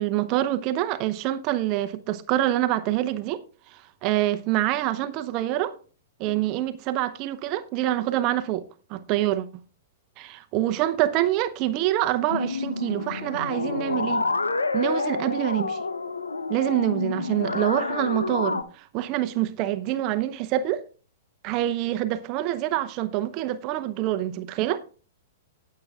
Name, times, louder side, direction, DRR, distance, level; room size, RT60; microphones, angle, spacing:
voice 1, 0.0-3.4 3.7-5.8 6.2-8.6 8.9-9.5 10.2-14.2 14.7-15.8 16.5-20.8 21.4-24.8, right 14 dB, 40° right, 0.8 m, -26 dB
sound 1, 12.3-18.6, left 3 dB, 90° left, 0.8 m, -28 dB
19.0 x 7.6 x 2.4 m
hypercardioid pair, 110°, 0 cm